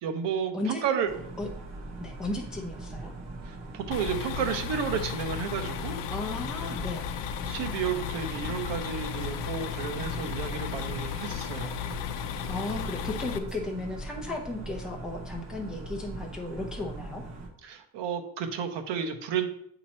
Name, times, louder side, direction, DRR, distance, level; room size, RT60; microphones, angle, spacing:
voice 1, 0.0-1.1 3.4-6.0 7.4-11.7 17.6-19.5, right 7 dB, 85° right, 6 dB, 1.0 m, -32 dB
sound 1, 1.1-17.5, right 2 dB, 40° right, 1.1 m, -41 dB
voice 2, 2.0-3.1 6.1-7.1 12.5-17.3, left 2 dB, ahead, -1 dB, 0.6 m, -35 dB
sound 2, 3.9-13.4, left 10 dB, 85° left, 0.6 m, -35 dB
8.6 x 2.9 x 4.2 m, 0.71 s
cardioid pair, 160°, 42 cm